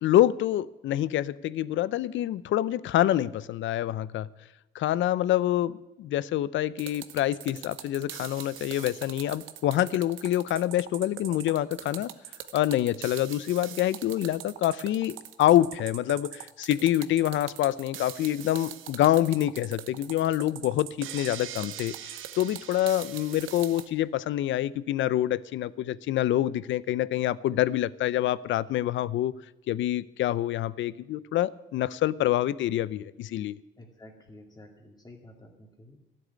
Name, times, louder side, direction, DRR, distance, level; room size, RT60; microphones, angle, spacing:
voice 1, 0.0-4.3 4.7-12.1 12.5-29.3 29.7-33.6, left 13 dB, 75° left, 19 dB, 0.5 m, -26 dB
sound 1, 6.8-23.9, right 11 dB, 85° right, 0.9 m, -41 dB
voice 2, 33.8-36.1, left 1 dB, 20° left, 1 dB, 2.2 m, -51 dB
12.5 x 7.7 x 9.5 m, 0.99 s
cardioid pair, 90°, 20 cm